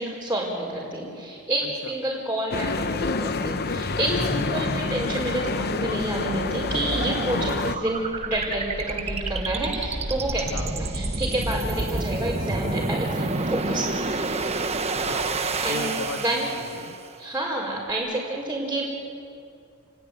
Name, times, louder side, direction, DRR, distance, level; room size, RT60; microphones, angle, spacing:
voice 1, 0.0-14.2 15.6-16.5 17.2-18.8, right 1 dB, 10° right, -7 dB, 4.9 m, -29 dB
voice 2, 1.6-1.9 4.1-4.5 7.3-7.7 10.4-10.9 14.9-17.0, left 2 dB, 75° left, 4 dB, 1.5 m, -37 dB
sound 1, 2.5-7.8, left 4 dB, 45° left, 0.8 m, -28 dB
sound 2, 3.7-17.1, right 2 dB, 30° right, 1.2 m, -30 dB
29.5 x 19.5 x 9.5 m, 2.5 s
head